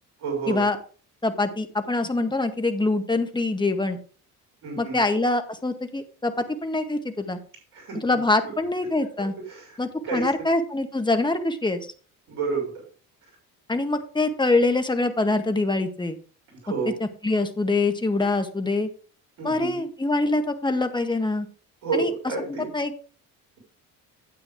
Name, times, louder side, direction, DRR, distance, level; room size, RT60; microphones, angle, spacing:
voice 1, 0.2-0.7 4.6-5.0 7.7-8.2 9.5-9.8 10.0-10.3 12.3-12.7 16.6-16.9 19.4-19.8 21.8-22.7, right 4 dB, 80° right, 0 dB, 6.1 m, -29 dB
voice 2, 1.2-4.0 4.8-6.3 6.6-7.4 7.9-9.3 9.8-11.9 13.7-16.2 16.8-18.9 19.4-21.5 21.9-22.1 22.7-22.9, left 2 dB, 10° left, 7 dB, 1.6 m, -24 dB
9.6 x 8.7 x 3.7 m, 0.41 s
hypercardioid pair, 60°, 46 cm